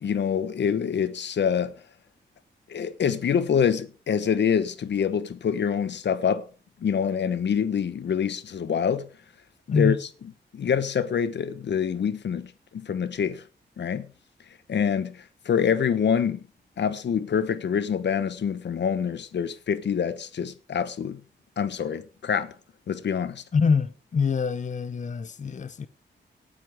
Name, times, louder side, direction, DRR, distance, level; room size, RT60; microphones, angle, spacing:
voice 1, 0.0-1.7 2.7-6.5 6.8-9.1 9.7-10.0 10.5-13.4 13.8-14.1 14.7-16.4 16.8-21.2 21.6-22.5 22.9-23.4, left 7 dB, 70° left, 1.1 m, -26 dB
voice 2, 23.5-25.9, left 5 dB, 40° left, 0.8 m, -25 dB
18.0 x 9.3 x 3.6 m
wide cardioid pair, 120°, 19 cm